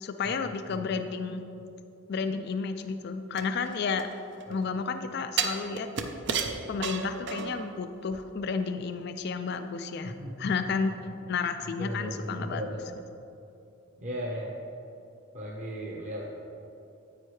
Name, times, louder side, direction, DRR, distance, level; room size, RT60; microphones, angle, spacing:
voice 1, 0.0-1.5 2.1-4.1 4.5-5.9 6.7-11.0 11.3-12.6, left 5 dB, 50° left, 8 dB, 0.3 m, -31 dB
sound 1, 3.4-4.5 5.4-7.7 8.1-8.2, right 6 dB, 55° right, 0.6 m, -32 dB
voice 2, 10.0-10.7 11.2-11.4 11.8-12.8 14.0-14.5 15.3-16.2, equal, 35° right, -4 dB, 0.9 m, -36 dB
9.8 x 8.5 x 3.2 m, 2.8 s
head